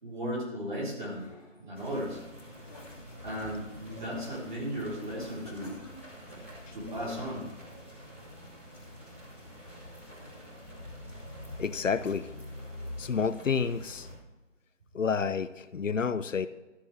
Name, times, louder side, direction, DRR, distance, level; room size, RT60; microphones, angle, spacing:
voice 1, 0.0-1.3 1.6-2.2 3.2-5.8 6.7-7.5, equal, 40° right, -6 dB, 3.9 m, -35 dB
sound 1, 0.6-1.8 2.2-3.6 4.0-4.3 5.2-6.5, left 1 dB, 30° left, 2.2 m, -52 dB
sound 2, 1.7-14.1, left 1 dB, 10° right, 1.3 m, -46 dB
voice 2, 11.6-12.3 13.0-14.1 14.9-16.5, left 6 dB, 85° left, 14 dB, 0.7 m, -29 dB
13.0 x 8.9 x 3.4 m, 1.1 s
figure-of-eight pair, 175°, 37 cm